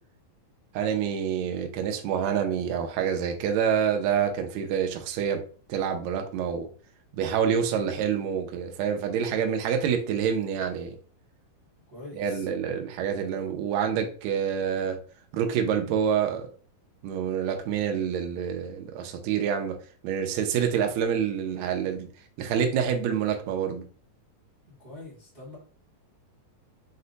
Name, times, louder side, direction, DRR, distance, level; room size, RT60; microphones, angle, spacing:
voice 1, 0.7-5.4 5.7-6.7 7.1-10.9 12.2-15.0 15.3-16.5 17.0-19.8 20.0-22.1 22.4-23.8, right 8 dB, 85° right, 1.5 m, -27 dB
voice 2, 11.9-12.5 24.7-25.6, left 2 dB, 50° right, 0.7 m, -44 dB
5.3 x 2.1 x 3.9 m
omnidirectional pair, 4.0 m